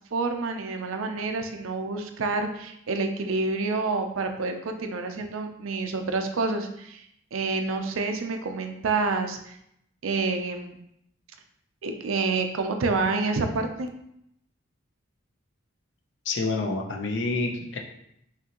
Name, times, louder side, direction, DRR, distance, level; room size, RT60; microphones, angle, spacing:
voice 1, 0.1-7.0 7.3-9.6 10.0-10.8 11.8-13.9, right 3 dB, 80° right, 6 dB, 0.5 m, -28 dB
voice 2, 16.3-17.8, left 3 dB, 60° left, 2 dB, 0.6 m, -28 dB
5.9 x 2.6 x 2.9 m, 0.76 s
head